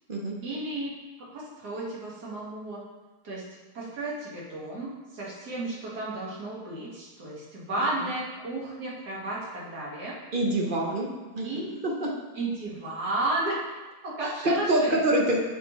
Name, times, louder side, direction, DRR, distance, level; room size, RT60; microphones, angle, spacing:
voice 1, 0.4-0.9 1.3-2.8 3.2-3.4 3.7-10.2 11.4-11.7 12.4-13.6 14.0-15.0, right 2 dB, 70° right, -5 dB, 2.3 m, -33 dB
voice 2, 10.3-11.5 11.8-12.1 14.4-15.4, right 1 dB, 35° right, -1 dB, 1.0 m, -25 dB
7.4 x 7.3 x 3.1 m, 1.2 s
omnidirectional pair, 1.8 m